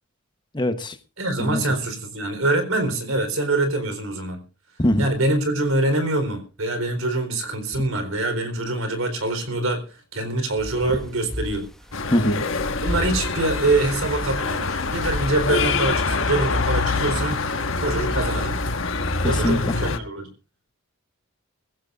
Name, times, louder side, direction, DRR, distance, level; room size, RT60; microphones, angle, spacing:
voice 1, 0.5-0.9 1.4-1.6 4.8-5.1 12.1-12.4 19.4-19.7, left 1 dB, 20° left, 1.1 m, -21 dB
voice 2, 1.2-4.4 5.0-11.7 12.8-17.4 17.8-18.6 19.2-20.3, right 2 dB, 75° right, 4.2 m, -24 dB
sound 1, 10.6-15.7, equal, ahead, 1.4 m, -35 dB
sound 2, 11.9-20.0, left 3 dB, 65° left, 1.4 m, -25 dB
22.5 x 15.5 x 2.5 m
head